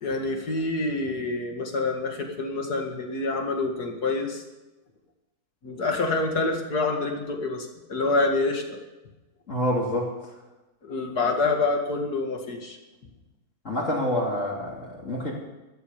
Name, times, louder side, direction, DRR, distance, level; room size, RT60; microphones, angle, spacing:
voice 1, 0.0-4.4 5.6-8.8 10.8-12.8, left 3 dB, 85° left, 3 dB, 2.6 m, -27 dB
voice 2, 9.5-10.1 13.6-15.3, left 1 dB, 50° left, -4 dB, 3.2 m, -27 dB
14.0 x 12.0 x 7.0 m, 1.1 s
omnidirectional pair, 1.6 m